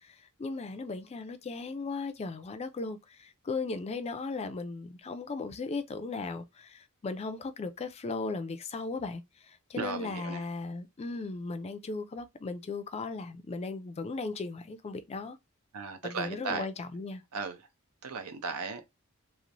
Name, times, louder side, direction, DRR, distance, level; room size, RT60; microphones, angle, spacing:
voice 1, 0.0-15.4 16.0-17.2, left 3 dB, 30° left, 0.3 m, -37 dB
voice 2, 9.8-10.5 15.7-16.7 17.3-17.7 18.0-18.9, right 4 dB, 80° right, 0.6 m, -36 dB
3.0 x 2.0 x 2.5 m
head